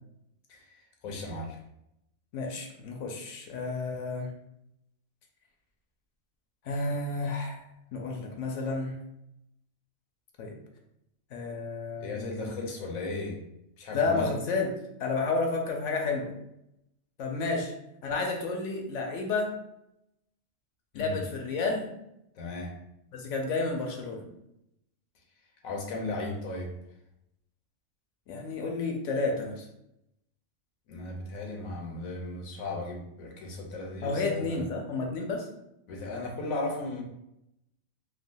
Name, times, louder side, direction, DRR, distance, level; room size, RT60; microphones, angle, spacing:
voice 1, 0.5-1.6 12.0-13.4 13.8-14.3 20.9-21.2 22.4-22.8 25.6-26.8 30.9-34.7 35.9-37.0, left 2 dB, 85° left, 1 dB, 1.1 m, -36 dB
voice 2, 2.3-4.3 6.6-7.6 7.9-9.0 10.4-10.6 11.3-12.5 13.9-14.7 15.0-16.3 17.2-17.7 18.0-19.5 21.0-21.9 23.1-24.2 28.3-29.7 34.0-35.5, left 3 dB, 70° left, 2 dB, 0.9 m, -31 dB
3.4 x 2.1 x 2.6 m, 0.82 s
omnidirectional pair, 1.4 m